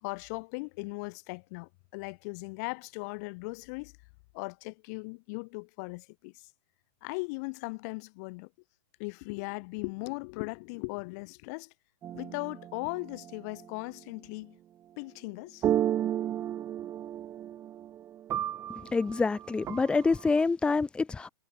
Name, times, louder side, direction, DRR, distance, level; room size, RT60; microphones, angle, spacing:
voice 1, 0.0-3.9 4.3-6.3 7.0-8.5 9.0-11.7 12.1-14.6 15.0-15.6, left 30 dB, 40° left, 2.9 m, -38 dB
sound 1, 12.0-13.8 15.6-20.4, right 11 dB, 20° right, 2.3 m, -34 dB
voice 2, 18.9-21.3, left 4 dB, 5° left, 1.2 m, -26 dB
hypercardioid pair, 155°, 14 cm